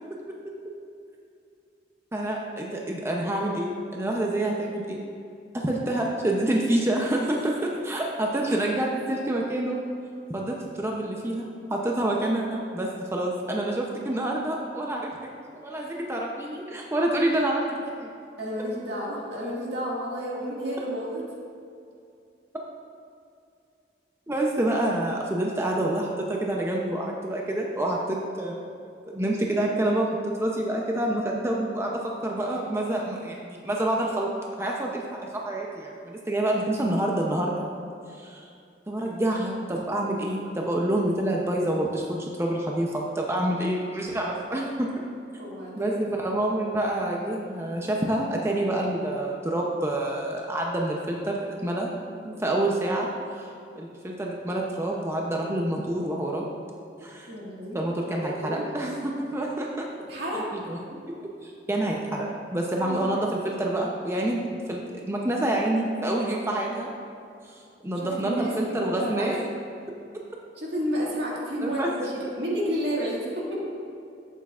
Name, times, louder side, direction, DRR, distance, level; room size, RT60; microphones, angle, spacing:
voice 1, 0.1-0.5 2.1-5.0 5.5-9.8 10.3-15.1 15.5-18.1 24.3-28.6 29.1-34.3 34.6-37.7 38.2-38.5 38.9-44.9 45.8-51.9 52.2-53.5 53.8-56.5 57.0-57.3 57.7-59.9 60.3-61.0 61.4-64.4 64.7-66.9 67.4-69.4 71.6-71.9, right 1 dB, 15° right, -1 dB, 0.6 m, -27 dB
voice 2, 18.4-21.3 45.4-46.0 57.3-57.8 58.2-58.7 60.1-60.5 62.8-63.1 68.0-69.3 70.6-73.7, equal, 70° right, -4 dB, 1.9 m, -31 dB
11.5 x 8.1 x 2.4 m, 2.5 s
head